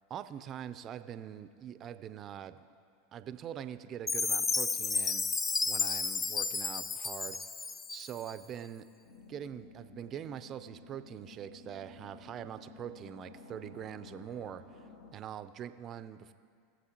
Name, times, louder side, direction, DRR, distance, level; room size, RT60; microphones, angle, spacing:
voice 1, 0.1-2.6 3.1-5.2 5.6-7.4 7.9-8.8 9.3-16.3, right 9 dB, 40° right, 12 dB, 0.5 m, -43 dB
Chime, 4.1-8.3, left 4 dB, 25° left, 0.5 m, -32 dB
sound 1, 9.0-15.1, left 3 dB, 65° left, 1.2 m, -53 dB
20.5 x 7.4 x 2.9 m, 2.2 s
hypercardioid pair, 85°, 0 cm